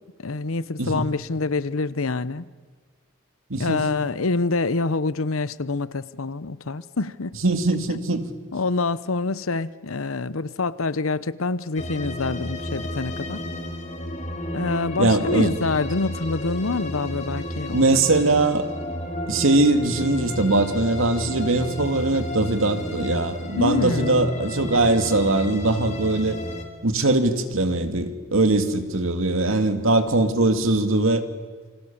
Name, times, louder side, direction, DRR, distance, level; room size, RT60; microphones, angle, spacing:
voice 1, 0.2-2.5 3.6-7.3 8.5-13.4 14.5-17.8 23.6-24.3, left 3 dB, 85° left, 16 dB, 0.9 m, -26 dB
voice 2, 3.5-3.8 7.4-8.3 15.0-15.5 17.7-18.7 19.3-26.4 26.8-31.2, right 2 dB, 80° right, 7 dB, 2.3 m, -21 dB
sound 1, 11.7-26.6, equal, 35° left, 3.0 m, -32 dB
29.0 x 26.0 x 7.3 m, 1.5 s
head